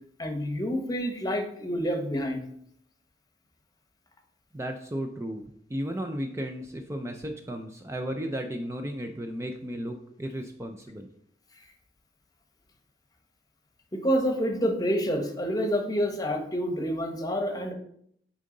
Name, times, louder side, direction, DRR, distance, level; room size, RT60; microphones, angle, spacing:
voice 1, 0.2-2.5 13.9-17.7, equal, 20° left, 4 dB, 1.0 m, -28 dB
voice 2, 4.5-11.1, equal, 15° right, 5 dB, 0.4 m, -34 dB
8.8 x 3.8 x 3.8 m, 0.68 s
head